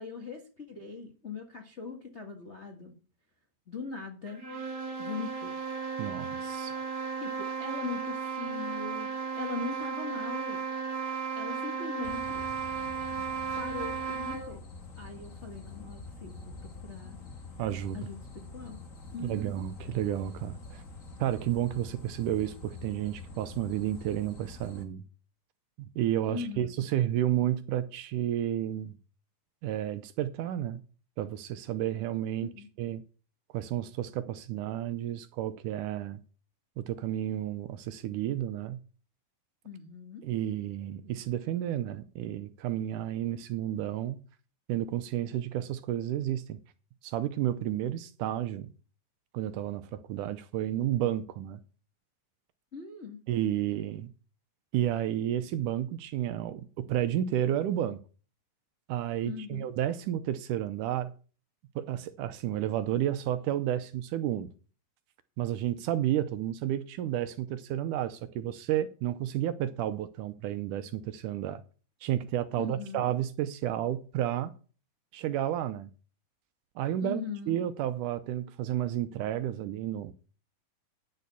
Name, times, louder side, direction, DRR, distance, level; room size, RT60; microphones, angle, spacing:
voice 1, 0.0-2.9 3.7-4.4 5.0-5.6 6.5-6.6 7.2-10.6 11.3-12.4 13.1-13.3 13.6-14.6 15.0-17.2 17.9-18.8 19.1-19.5 26.3-26.7 32.4-32.7 39.6-40.2 52.7-53.2 59.2-59.7 72.6-73.1 77.0-77.6, left 4 dB, 75° left, 0.6 m, -40 dB
sound 1, 4.3-14.6, right 5 dB, 40° right, 3.3 m, -35 dB
voice 2, 6.0-6.8 17.6-18.0 19.2-20.8 21.2-25.0 25.8-29.0 29.6-30.8 31.2-32.5 32.8-33.0 33.5-36.2 36.8-38.8 40.2-44.2 44.7-46.6 47.0-48.7 49.3-51.6 53.3-54.1 54.7-58.0 58.9-61.1 61.8-64.5 65.4-71.6 72.0-74.5 75.1-75.9 76.8-77.2 77.5-80.1, right 12 dB, 80° right, 2.1 m, -31 dB
sound 2, 12.0-24.8, left 3 dB, 40° left, 1.1 m, -46 dB
10.5 x 6.7 x 6.8 m
omnidirectional pair, 4.0 m